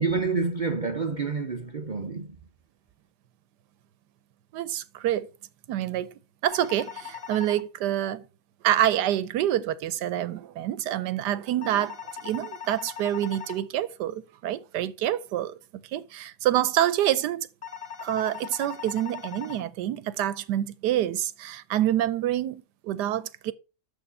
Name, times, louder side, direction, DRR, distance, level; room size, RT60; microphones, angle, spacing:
voice 1, 0.0-2.4, right 4 dB, 60° right, 0.4 m, -28 dB
voice 2, 4.5-5.3 5.7-6.1 6.4-8.2 8.6-12.0 12.2-15.5 15.9-17.5 18.0-23.5, right 12 dB, 75° right, 1.2 m, -27 dB
sound 1, 6.5-7.6 11.6-13.6 17.6-19.6, left 8 dB, 40° left, 0.8 m, -40 dB
6.6 x 6.4 x 5.4 m
omnidirectional pair, 1.9 m